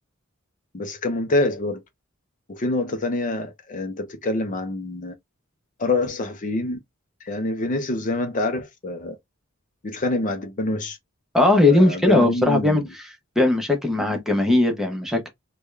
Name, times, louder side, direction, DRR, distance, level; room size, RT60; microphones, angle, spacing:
voice 1, 0.7-1.8 2.5-5.1 5.8-6.8 7.2-9.2 9.8-11.0 11.7-12.9, left 2 dB, 40° left, 0.5 m, -26 dB
voice 2, 11.3-13.0 13.4-15.3, left 2 dB, ahead, 0.7 m, -19 dB
3.4 x 2.2 x 3.1 m
head